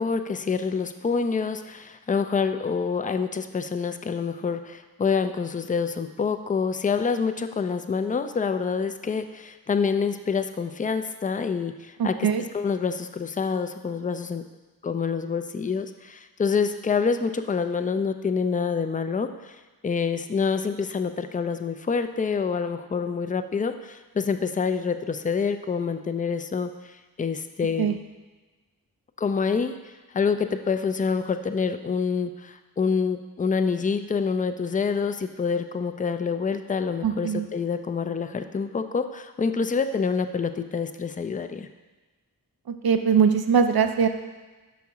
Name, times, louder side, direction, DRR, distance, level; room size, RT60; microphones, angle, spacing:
voice 1, 0.0-12.3 12.5-14.4 14.8-28.0 29.2-41.7, left 5 dB, 20° left, 9 dB, 0.4 m, -27 dB
voice 2, 12.0-12.4 27.8-28.0 37.0-37.5 42.7-44.1, right 7 dB, 75° right, 8 dB, 0.6 m, -21 dB
5.8 x 4.2 x 4.7 m, 1.2 s
cardioid pair, 45°, 37 cm